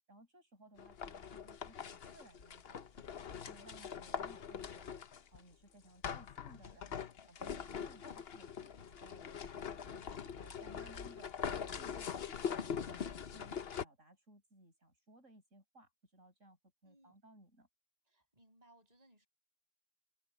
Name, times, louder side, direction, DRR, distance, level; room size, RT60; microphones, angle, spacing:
voice 1, 0.1-3.1 3.3-5.0 5.3-10.1 10.4-17.7, right 1 dB, 85° right, 7.7 m, -61 dB
sound 1, 0.8-5.4 6.0-13.8, left 7 dB, 55° left, 1.1 m, -43 dB
voice 2, 16.8-17.2 18.1-19.3, right 1 dB, 30° right, 6.4 m, -67 dB
omnidirectional pair, 1.3 m